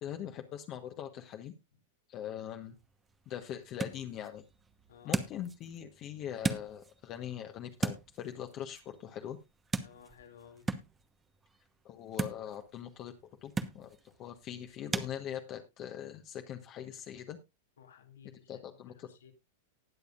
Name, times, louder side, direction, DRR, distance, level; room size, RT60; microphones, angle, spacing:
voice 1, 0.0-1.5 2.1-2.8 3.3-4.4 5.0-9.4 11.8-13.1 13.4-17.4 18.5-19.1, left 10 dB, 40° left, 1.2 m, -42 dB
sound 1, 2.6-15.1, right 4 dB, 15° right, 1.1 m, -40 dB
voice 2, 4.9-5.2 9.8-10.7 17.8-18.5 19.1-19.3, left 8 dB, 80° left, 2.6 m, -55 dB
19.0 x 6.9 x 2.5 m
hypercardioid pair, 105°, 0 cm